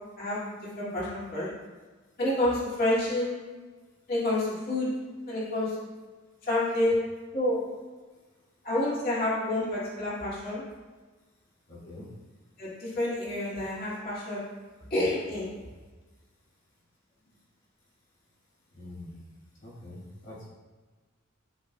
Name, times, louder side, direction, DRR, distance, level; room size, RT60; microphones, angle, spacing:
voice 1, 0.8-1.5 2.2-3.3 4.1-4.9 5.3-5.8 6.4-7.1 7.3-7.6 8.6-10.6 12.6-14.4 14.9-15.5, left 1 dB, 45° left, -8 dB, 2.2 m, -28 dB
voice 2, 11.7-12.1 18.7-19.2 19.6-20.5, left 1 dB, 65° left, -8 dB, 2.2 m, -44 dB
12.5 x 4.6 x 2.2 m, 1.3 s
head